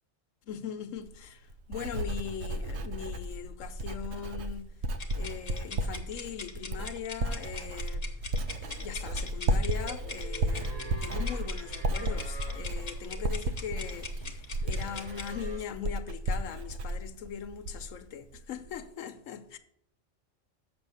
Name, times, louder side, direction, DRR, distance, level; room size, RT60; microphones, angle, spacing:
voice 1, 0.4-4.7 5.1-19.6, left 8 dB, 85° left, 1.1 m, -40 dB
Writing, 1.0-18.0 18.3-18.8, right 1 dB, 65° right, 0.9 m, -34 dB
sound 1, 5.0-15.3, left 4 dB, 35° left, 0.9 m, -43 dB
sound 2, 9.8-15.6, right 2 dB, 20° right, 2.9 m, -47 dB
7.0 x 6.1 x 7.0 m
omnidirectional pair, 1.3 m